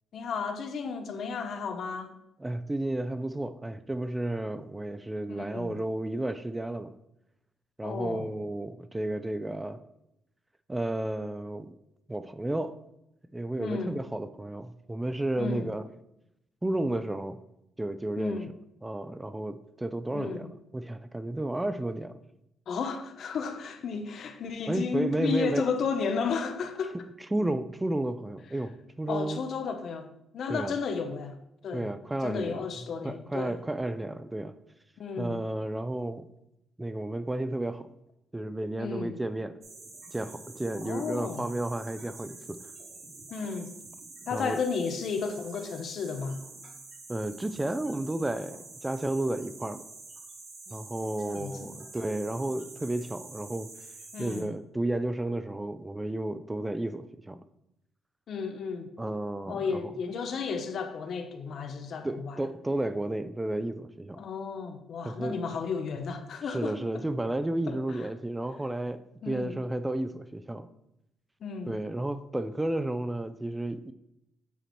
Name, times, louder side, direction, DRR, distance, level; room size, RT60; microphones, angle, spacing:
voice 1, 0.1-2.1 5.3-5.7 7.8-8.3 13.6-14.0 15.4-15.7 18.2-18.5 20.1-20.5 22.7-27.0 29.1-31.4 31.6-31.9 32.2-33.6 35.0-35.4 38.8-39.2 40.8-41.5 43.3-43.7 44.3-46.4 51.2-51.7 54.1-54.5 58.3-58.9 59.5-62.4 64.1-67.0 67.7-68.1 69.2-69.6 71.4-71.7, left 5 dB, 60° left, 0.7 m, -33 dB
voice 2, 2.4-6.9 7.8-9.8 10.7-11.7 12.1-12.8 13.3-15.9 16.6-17.4 17.8-18.4 18.8-20.5 20.7-22.2 24.7-25.6 27.3-29.4 30.5-30.7 31.7-32.7 33.0-34.5 35.2-36.3 36.8-37.9 38.3-39.6 40.1-42.7 44.3-44.6 47.1-49.8 50.7-53.7 54.2-57.4 59.0-59.9 62.0-64.2 65.0-65.4 66.5-70.7 71.7-73.9, right 1 dB, 15° right, 0.4 m, -32 dB
sound 1, 39.6-54.4, right 3 dB, 60° right, 1.9 m, -47 dB
8.0 x 3.0 x 4.3 m
cardioid pair, 90°, 0 cm